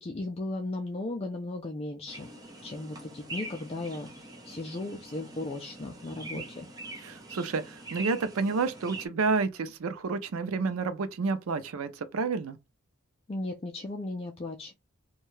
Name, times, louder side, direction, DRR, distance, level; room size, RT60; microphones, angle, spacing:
voice 1, 0.0-2.3 2.6-6.7 13.3-14.7, left 2 dB, 30° left, 0.4 m, -36 dB
sound 1, 2.1-9.1, right 2 dB, 20° right, 0.6 m, -44 dB
voice 2, 7.0-12.6, right 4 dB, 85° right, 0.5 m, -30 dB
2.7 x 2.2 x 3.1 m
head